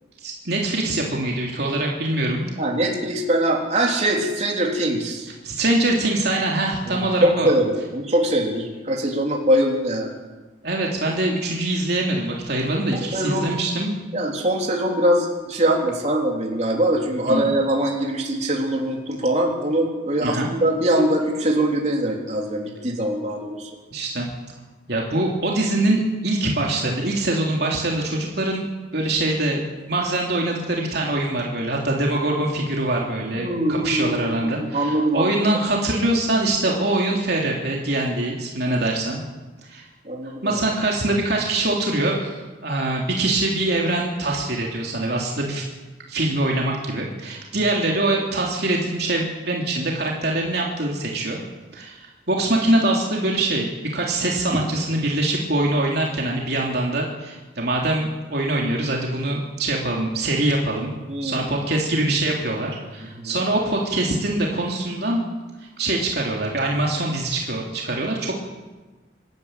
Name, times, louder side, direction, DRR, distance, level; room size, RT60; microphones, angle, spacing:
voice 1, 0.2-2.5 5.4-7.5 10.6-13.9 17.2-17.5 20.2-20.5 23.9-24.3 24.9-28.7 28.9-39.2 39.6-39.9 40.2-45.7 46.1-51.4 51.7-60.9 61.2-65.2 65.8-68.4, right 2 dB, 55° right, -2 dB, 3.3 m, -23 dB
voice 2, 2.6-5.3 7.0-10.1 12.9-13.5 14.1-23.6 33.4-35.3 40.1-40.6 61.1-61.4 63.2-63.4, right 1 dB, 35° right, -1 dB, 3.8 m, -22 dB
26.0 x 13.0 x 9.0 m, 1.2 s
head